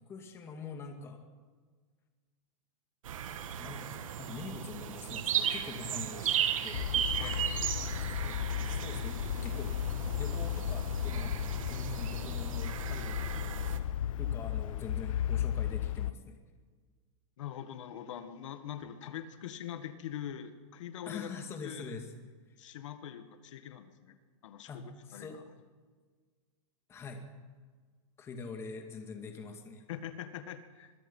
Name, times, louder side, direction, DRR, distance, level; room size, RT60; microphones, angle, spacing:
voice 1, 0.1-1.2 3.6-6.8 7.4-7.7 8.6-9.7 10.1-11.4 11.7-13.8 14.2-16.3 21.1-22.1 24.7-25.4 26.9-27.3 28.2-29.8, left 4 dB, 15° left, 4 dB, 2.3 m, -44 dB
sound 1, 3.0-13.8, right 9 dB, 85° right, 1.9 m, -36 dB
sound 2, 6.7-16.1, left 10 dB, 85° left, 0.5 m, -34 dB
voice 2, 7.2-7.6 17.4-21.3 21.6-22.0 22.6-24.2 24.4-24.8 25.1-25.4 29.9-30.9, left 10 dB, 65° left, 9 dB, 1.9 m, -43 dB
25.5 x 22.0 x 5.6 m, 1.5 s
supercardioid pair, 170°, 17 cm